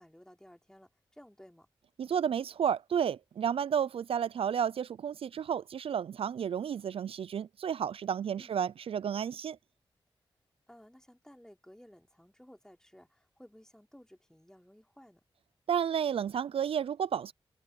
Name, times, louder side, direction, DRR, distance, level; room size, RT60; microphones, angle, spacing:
voice 1, 0.0-1.7 8.3-8.6 10.7-15.2, equal, 5° left, 3.8 m, -56 dB
voice 2, 2.0-9.6 15.7-17.3, right 8 dB, 75° right, 0.4 m, -32 dB
open air
cardioid pair, 45°, 10 cm